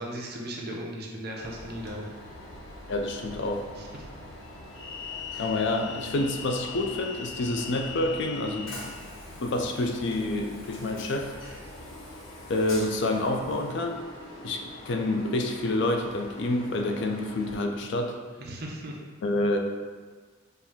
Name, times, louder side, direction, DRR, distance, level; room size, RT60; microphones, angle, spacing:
voice 1, 0.0-2.1 3.8-3.9 18.4-19.0, right 1 dB, 50° right, -1 dB, 0.7 m, -36 dB
Train, 1.4-17.5, left 3 dB, 75° left, 0.8 m, -42 dB
voice 2, 2.9-3.7 5.3-8.9 9.4-11.3 12.5-14.0 14.4-18.2 19.2-19.6, left 2 dB, 60° left, 3 dB, 0.4 m, -28 dB
4.4 x 2.5 x 3.5 m, 1.4 s
head